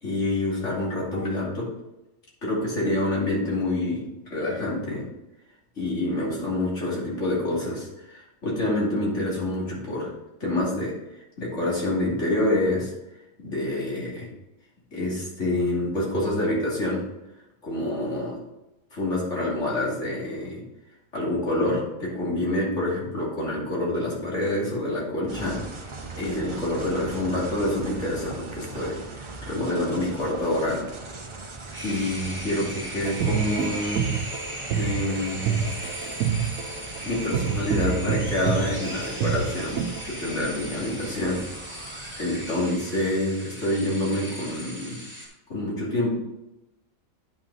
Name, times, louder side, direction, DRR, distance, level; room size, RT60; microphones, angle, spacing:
voice 1, 0.0-1.7 2.4-4.0 4.3-5.0 5.8-10.1 10.4-10.9 11.4-12.9 13.4-14.3 14.9-17.0 17.6-18.4 18.9-20.6 21.1-25.9 26.2-30.8 31.8-34.1 34.8-35.6 37.0-41.4 42.2-45.0 45.5-46.1, left 1 dB, 60° left, -5 dB, 3.1 m, -27 dB
sound 1, 25.3-42.5, right 3 dB, 30° right, 0.7 m, -40 dB
sound 2, 31.7-45.3, right 1 dB, 10° right, 2.2 m, -38 dB
sound 3, 33.0-40.0, right 7 dB, 85° right, 1.1 m, -27 dB
9.3 x 6.0 x 4.1 m, 0.96 s
omnidirectional pair, 1.4 m